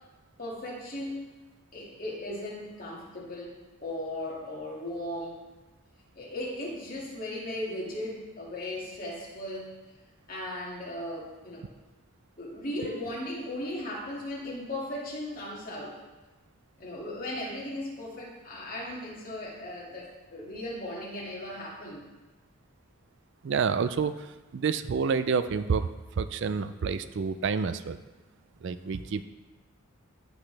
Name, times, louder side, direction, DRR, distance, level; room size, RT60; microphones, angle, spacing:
voice 1, 0.4-1.2 1.7-5.4 6.2-9.7 10.3-11.7 12.4-16.0 16.8-22.1, left 1 dB, 40° left, -4 dB, 2.2 m, -37 dB
voice 2, 23.4-28.0 28.6-29.2, right 5 dB, 55° right, 12 dB, 0.3 m, -29 dB
14.5 x 6.0 x 3.3 m, 1.1 s
head